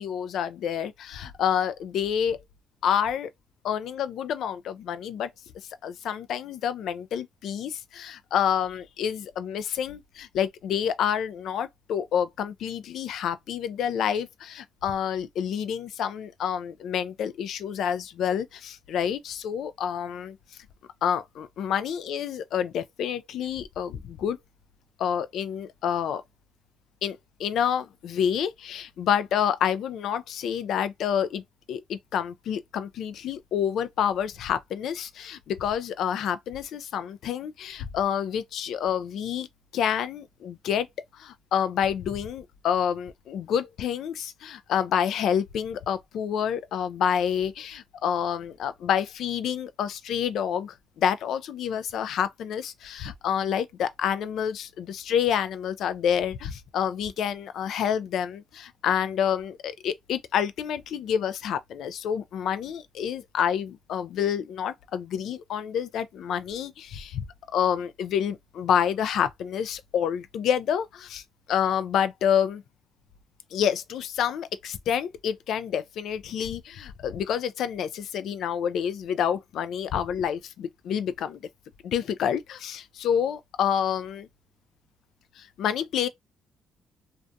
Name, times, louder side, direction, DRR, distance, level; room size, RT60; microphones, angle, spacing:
voice 1, 0.0-2.4 2.8-3.3 3.6-5.3 5.8-20.4 21.0-24.4 25.0-26.2 27.0-31.4 31.7-39.5 39.7-40.9 41.1-67.2 67.5-72.6 73.5-81.4 81.8-84.3 85.4-86.1, left 8 dB, 75° left, 0.3 m, -28 dB
2.4 x 2.2 x 2.6 m
cardioid pair, 90°, 0 cm